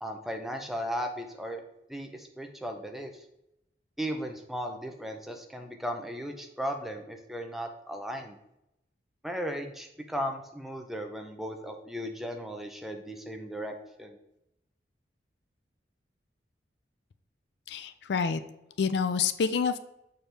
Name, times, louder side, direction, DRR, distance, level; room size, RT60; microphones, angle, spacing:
voice 1, 0.0-1.6 1.9-3.1 4.0-8.4 9.2-13.7 14.0-14.2, equal, ahead, 3 dB, 0.5 m, -36 dB
voice 2, 17.7-18.4 18.8-19.8, left 6 dB, 70° left, 12 dB, 0.4 m, -27 dB
6.6 x 4.5 x 3.3 m, 0.84 s
head